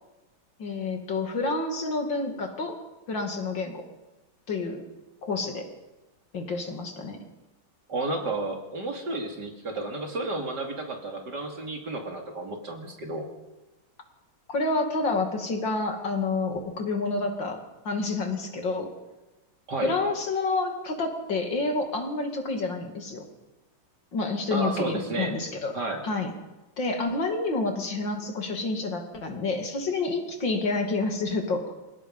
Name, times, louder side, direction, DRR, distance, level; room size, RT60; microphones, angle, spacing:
voice 1, 0.6-2.8 3.1-3.8 4.5-4.8 5.2-5.7 6.3-7.2 14.5-18.9 19.8-23.3 24.1-25.8 26.0-26.3 26.8-31.7, left 3 dB, 60° left, 4 dB, 3.1 m, -29 dB
voice 2, 7.9-13.3 19.7-19.9 24.5-25.4 25.7-26.0, right 2 dB, 55° right, 2 dB, 3.3 m, -32 dB
27.5 x 18.0 x 5.5 m, 1.1 s
omnidirectional pair, 2.2 m